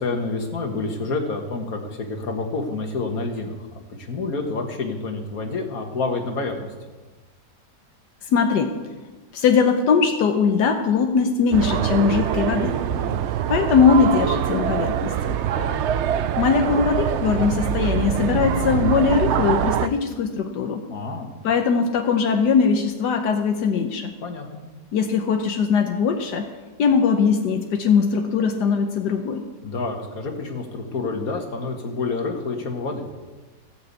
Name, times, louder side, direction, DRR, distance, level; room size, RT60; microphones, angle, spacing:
voice 1, 0.0-6.7 12.9-13.2 15.6-15.8 20.9-21.3 24.2-24.7 29.6-33.1, left 3 dB, 60° left, 3 dB, 2.1 m, -28 dB
voice 2, 8.3-8.8 9.3-12.8 13.5-15.4 16.4-20.8 21.4-24.1 24.9-26.5 26.8-29.4, left 6 dB, 85° left, 4 dB, 1.5 m, -20 dB
sound 1, 11.5-19.9, right 9 dB, 80° right, 0.6 m, -24 dB
16.0 x 6.3 x 8.2 m, 1.3 s
omnidirectional pair, 1.7 m